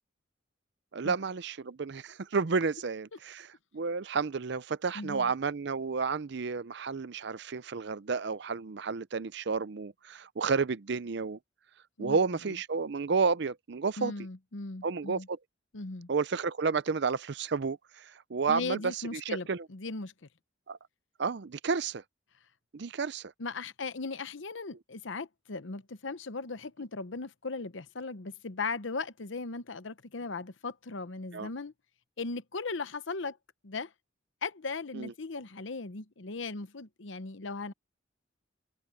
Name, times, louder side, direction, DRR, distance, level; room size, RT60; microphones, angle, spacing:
voice 1, 0.9-11.4 12.0-14.1 14.8-15.4 16.1-19.7 20.7-20.8 21.2-22.0 22.7-23.3 31.3-31.5 34.9-35.1, right 5 dB, 55° right, 0.5 m, -31 dB
voice 2, 4.9-5.3 12.0-12.2 14.0-15.3 15.7-16.1 18.5-20.1 23.4-31.7 32.2-33.4 33.6-33.9 34.4-37.7, left 3 dB, 70° left, 0.9 m, -38 dB
head